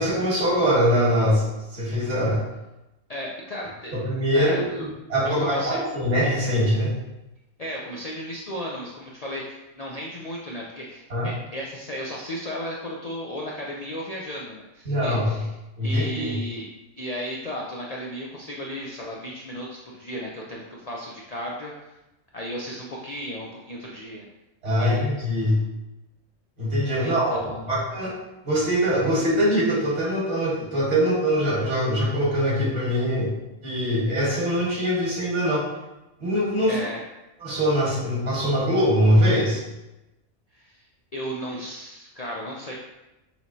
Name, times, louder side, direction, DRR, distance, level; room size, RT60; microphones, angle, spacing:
voice 1, 0.0-2.4 3.9-6.9 11.1-11.3 14.9-15.4 15.8-16.3 24.6-25.6 26.6-28.1 28.4-33.3 33.6-35.6 36.2-36.8 37.4-39.6, equal, 70° right, -5 dB, 1.8 m, -23 dB
voice 2, 3.1-4.0 4.3-4.8 5.2-5.8 7.6-15.5 15.8-16.7 17.0-21.9 22.3-24.3 24.8-25.5 26.9-27.6 36.7-37.0 40.5-40.9 41.1-42.7, equal, 55° left, -3 dB, 0.4 m, -35 dB
5.8 x 3.0 x 2.7 m, 0.98 s
omnidirectional pair, 1.3 m